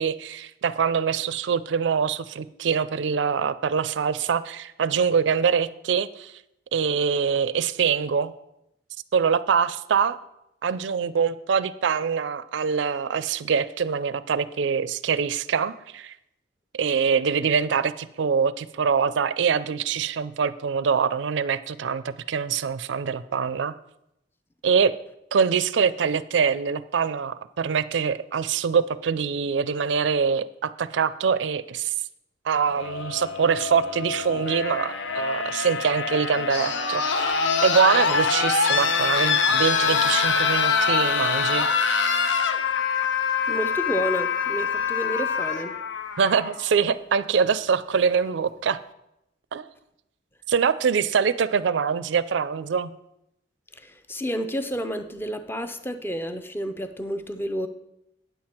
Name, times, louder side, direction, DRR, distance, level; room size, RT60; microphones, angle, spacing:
voice 1, 0.0-6.3 6.7-8.3 9.1-10.2 10.6-16.1 16.7-23.7 24.6-25.0 25.3-31.9 32.5-41.7 46.2-48.8 49.5-49.7 50.5-52.9, right 6 dB, 75° right, 16 dB, 0.4 m, -24 dB
sound 1, 32.7-46.7 47.9-48.0, left 5 dB, 90° left, 0.7 m, -24 dB
voice 2, 43.5-45.8 53.7-57.7, equal, 10° left, 9 dB, 0.5 m, -30 dB
9.1 x 7.6 x 4.3 m, 0.84 s
head